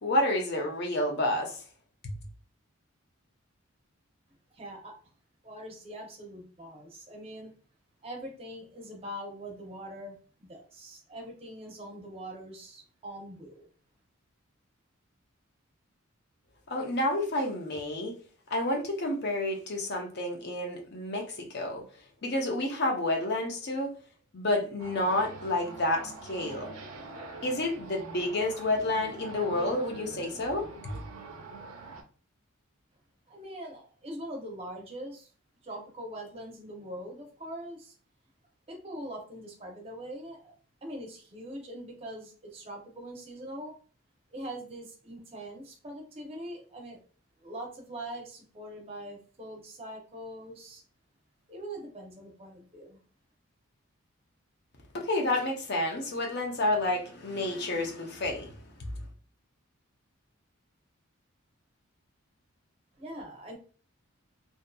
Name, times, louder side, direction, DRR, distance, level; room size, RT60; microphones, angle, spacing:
voice 1, 0.0-1.6 2.0-2.1 16.7-18.2 18.5-21.8 22.2-24.0 24.3-26.7 27.4-31.0 54.9-58.9, left 1 dB, 50° left, 0.6 m, -30 dB
voice 2, 4.5-5.0 5.4-7.5 8.0-10.2 10.5-13.7 33.3-35.3 35.6-38.0 38.7-40.5 40.8-43.7 44.3-47.0 47.4-50.8 51.5-53.0 63.0-63.6, right 1 dB, 25° right, 0.6 m, -42 dB
sound 1, 24.8-32.0, right 3 dB, 85° right, 0.6 m, -44 dB
2.6 x 2.5 x 2.2 m
head